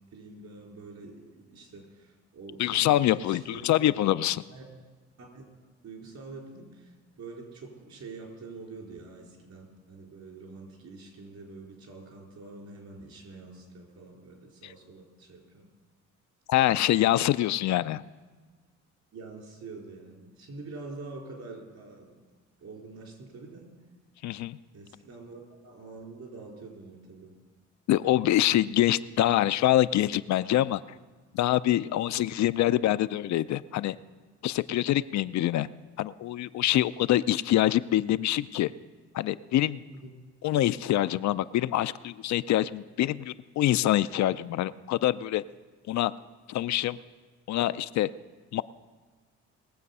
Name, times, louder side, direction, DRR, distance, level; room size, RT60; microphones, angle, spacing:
voice 1, 0.1-3.6 4.5-4.7 5.2-5.4 5.8-15.7 16.6-16.9 17.5-17.6 19.1-22.1 22.6-23.7 24.7-27.3 31.8-32.0 39.9-40.1, right 3 dB, 65° right, -1 dB, 4.4 m, -46 dB
voice 2, 2.6-4.4 16.5-18.0 24.2-24.6 27.9-30.8 31.3-34.0 34.4-35.7 36.0-38.7 39.1-39.8 40.4-45.4 45.9-46.1 46.5-47.0 47.5-48.1 48.5-48.6, left 13 dB, 65° left, 14 dB, 0.5 m, -25 dB
20.5 x 7.5 x 5.5 m, 1.4 s
cardioid pair, 90°, 30 cm